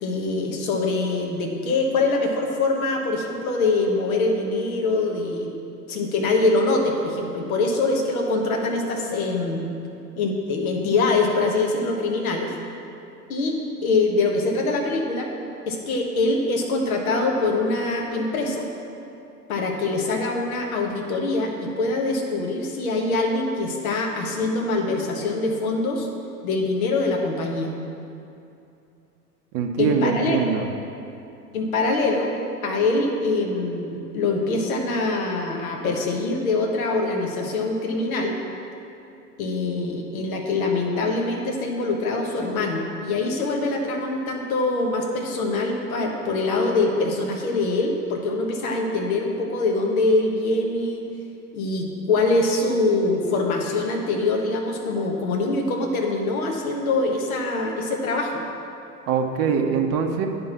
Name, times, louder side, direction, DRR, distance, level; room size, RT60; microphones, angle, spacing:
voice 1, 0.0-5.5 5.9-9.7 10.2-12.5 13.3-15.3 15.7-18.7 19.5-26.1 26.4-27.7 29.8-30.6 31.5-32.3 32.6-38.4 39.4-51.1 51.5-58.4, left 3 dB, 60° left, 1 dB, 1.4 m, -24 dB
voice 2, 29.5-30.7 59.1-60.3, right 6 dB, 30° right, 3 dB, 0.8 m, -23 dB
9.4 x 5.4 x 5.9 m, 2.7 s
figure-of-eight pair, 85°, 48 cm